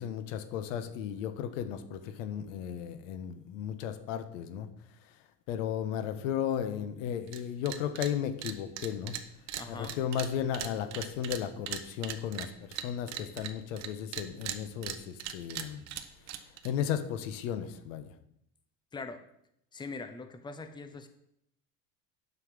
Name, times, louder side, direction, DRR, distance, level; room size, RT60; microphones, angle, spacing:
voice 1, 0.0-4.7 5.5-9.1 9.7-15.8 16.6-18.1, left 9 dB, 90° left, 10 dB, 1.3 m, -35 dB
TV Base, 7.3-7.4 7.7-8.1 8.4-13.9 14.1-16.7, right 10 dB, 45° right, 1.1 m, -39 dB
voice 2, 9.6-10.0 18.9-19.2 19.7-21.1, left 3 dB, 10° left, 8 dB, 0.9 m, -42 dB
9.8 x 5.8 x 7.4 m, 0.76 s
cardioid pair, 135°, 37 cm